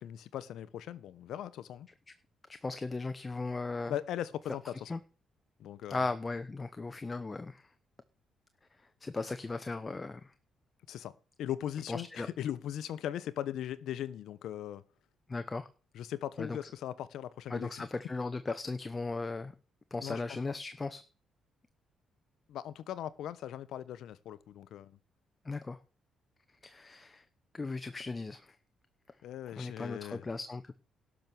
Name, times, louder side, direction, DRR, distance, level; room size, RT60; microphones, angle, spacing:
voice 1, 0.0-1.9 3.9-4.9 5.6-6.1 10.9-11.1 11.4-14.8 15.9-17.9 20.0-20.2 22.5-25.0 29.2-30.2, left 11 dB, 75° left, 0.9 m, -39 dB
voice 2, 2.5-3.9 4.9-5.0 5.9-7.7 9.0-10.3 11.9-12.3 15.3-15.7 16.4-16.7 17.5-19.5 19.9-21.0 25.4-25.8 26.6-27.2 27.5-28.5 29.6-30.7, left 3 dB, 25° left, 0.9 m, -37 dB
12.0 x 6.2 x 6.8 m
cardioid pair, 90°, 0 cm